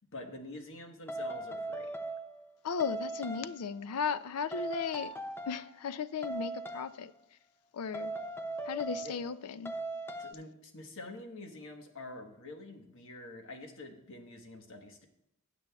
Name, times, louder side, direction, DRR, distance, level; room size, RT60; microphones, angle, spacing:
voice 1, 0.1-1.9 9.0-9.1 10.2-15.0, left 2 dB, 60° left, 1.2 m, -46 dB
sound 1, 1.1-2.5 2.8-3.7 4.5-5.8 6.2-7.0 7.9-9.3 9.7-10.3, right 2 dB, 10° left, 0.4 m, -39 dB
voice 2, 2.6-5.1 5.5-7.1 7.7-8.1 8.7-9.8, left 6 dB, 80° left, 0.4 m, -36 dB
15.5 x 9.1 x 2.3 m
head